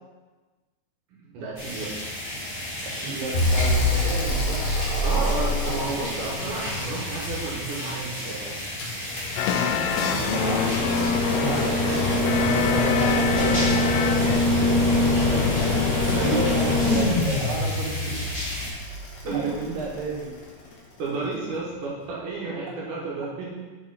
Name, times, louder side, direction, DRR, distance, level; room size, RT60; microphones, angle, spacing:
voice 1, 1.2-2.0 5.0-8.6 11.2-11.7 12.4-12.8 13.1-13.7 16.1-16.4 19.2-19.5 21.0-23.6, right 3 dB, 65° right, -4 dB, 2.5 m, -32 dB
sound 1, 1.6-18.7, left 1 dB, 15° left, 1.7 m, -34 dB
voice 2, 3.0-4.6 10.1-10.6 11.3-12.2 12.8-13.3 15.2-18.2 19.3-20.4, right 3 dB, 85° right, -4 dB, 3.8 m, -31 dB
sound 2, 3.3-7.5 8.8-20.0 21.5-21.6, left 2 dB, 60° left, 2.3 m, -24 dB
sound 3, 9.4-14.4, left 8 dB, 85° left, 2.1 m, -27 dB
9.2 x 4.4 x 4.0 m, 1.3 s
omnidirectional pair, 4.6 m